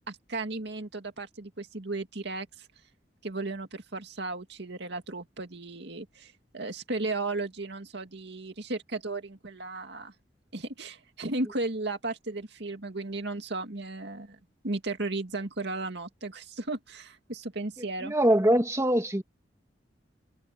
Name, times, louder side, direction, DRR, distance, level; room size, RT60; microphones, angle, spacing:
voice 1, 0.1-2.7 3.2-10.1 10.5-14.4 14.6-18.1, right 2 dB, 65° right, 2.4 m, -35 dB
voice 2, 18.0-19.2, right 1 dB, 15° right, 2.2 m, -23 dB
head